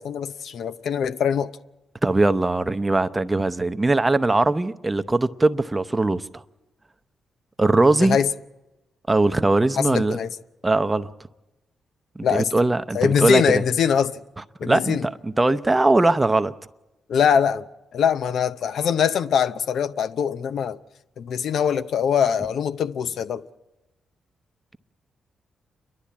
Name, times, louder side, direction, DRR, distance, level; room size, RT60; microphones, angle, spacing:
voice 1, 0.0-1.5 8.0-8.3 9.8-10.3 12.2-12.5 12.9-14.2 14.6-15.1 17.1-17.7 17.9-20.8 21.2-23.4, left 7 dB, 75° left, 0.6 m, -22 dB
voice 2, 2.0-6.4 7.6-8.2 9.1-10.2 10.6-11.1 12.2-13.6 14.6-16.5, right 2 dB, 20° right, 0.7 m, -20 dB
28.0 x 12.0 x 8.5 m
cardioid pair, 65°, 0 cm